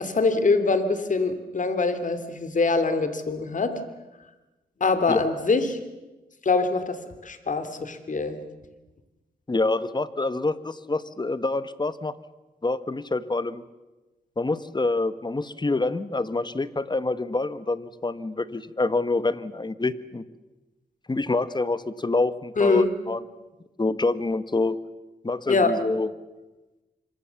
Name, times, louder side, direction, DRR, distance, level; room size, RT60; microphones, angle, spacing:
voice 1, 0.0-3.8 4.8-5.8 6.4-8.4 22.6-22.9 25.5-25.7, left 3 dB, 50° left, 10 dB, 2.9 m, -23 dB
voice 2, 9.5-12.1 12.6-13.6 14.4-20.2 21.1-23.2 23.8-24.8 25.2-26.1, left 3 dB, 25° left, 14 dB, 1.3 m, -26 dB
26.0 x 23.0 x 7.1 m, 1.1 s
cardioid pair, 70°, 17 cm